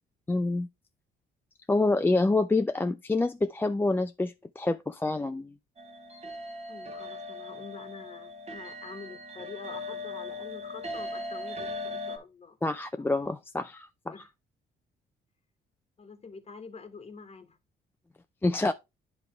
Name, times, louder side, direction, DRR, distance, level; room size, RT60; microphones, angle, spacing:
voice 1, 0.3-0.7 1.7-5.5 12.6-14.1 18.4-18.7, left 2 dB, 10° left, 0.3 m, -27 dB
sound 1, 5.8-12.2, left 2 dB, 30° right, 1.2 m, -39 dB
voice 2, 6.7-12.6 13.0-13.1 14.1-14.3 16.0-17.6, left 4 dB, 30° left, 1.2 m, -46 dB
10.0 x 3.5 x 3.2 m
cardioid pair, 90°, 20 cm